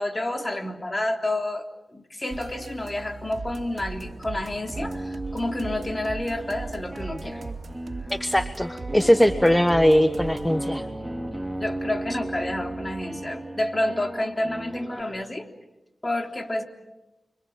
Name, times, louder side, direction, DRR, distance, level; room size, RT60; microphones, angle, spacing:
voice 1, 0.0-7.4 9.0-9.1 11.6-15.5 16.0-16.6, left 1 dB, 30° left, 4 dB, 3.5 m, -29 dB
sound 1, 2.3-13.0, right 4 dB, 75° right, 2.6 m, -39 dB
sound 2, 4.6-15.0, right 1 dB, 10° right, 2.7 m, -35 dB
voice 2, 8.1-10.8, equal, 10° left, 10 dB, 1.2 m, -20 dB
30.0 x 24.5 x 7.3 m, 1.0 s
cardioid pair, 50°, 0 cm